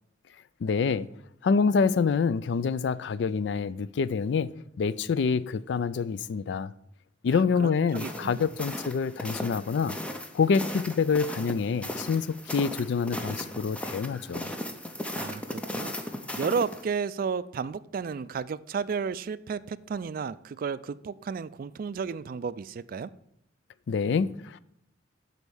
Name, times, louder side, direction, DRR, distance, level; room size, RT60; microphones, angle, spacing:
voice 1, 0.6-1.1 1.4-4.5 4.8-6.7 7.2-10.0 10.3-12.3 12.5-14.5 23.9-24.6, left 5 dB, 65° left, 0.3 m, -26 dB
voice 2, 7.3-8.5 15.1-15.9 16.4-23.1, right 5 dB, 50° right, 0.3 m, -33 dB
sound 1, 7.9-16.8, left 1 dB, 5° left, 0.6 m, -37 dB
8.1 x 4.2 x 7.0 m
head